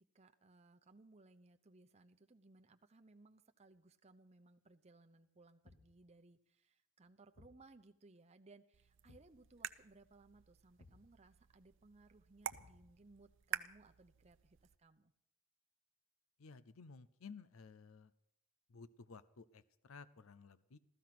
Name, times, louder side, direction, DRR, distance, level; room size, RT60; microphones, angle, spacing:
voice 1, 0.0-15.1, right 2 dB, 30° right, 6 dB, 0.8 m, -64 dB
Thump thud, 5.6-6.1 7.4-7.7 9.1-9.4 10.8-11.1 12.5-13.1, left 2 dB, 70° left, 1.2 m, -63 dB
sound 1, 8.7-14.8, right 9 dB, 65° right, 0.6 m, -49 dB
voice 2, 16.4-18.1 18.7-20.8, left 5 dB, 85° left, 16 dB, 0.6 m, -55 dB
15.0 x 14.0 x 6.0 m, 0.77 s
head